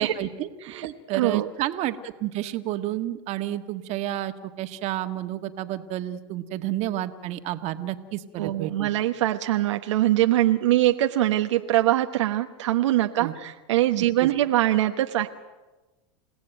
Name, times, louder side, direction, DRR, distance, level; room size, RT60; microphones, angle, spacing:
voice 1, 0.0-8.9 13.2-13.3 14.0-14.3, right 13 dB, 45° right, 8 dB, 1.7 m, -31 dB
voice 2, 1.1-1.5 8.4-15.3, right 14 dB, 80° right, 5 dB, 1.1 m, -23 dB
29.0 x 17.0 x 9.2 m, 1.2 s
hypercardioid pair, 110°, 15 cm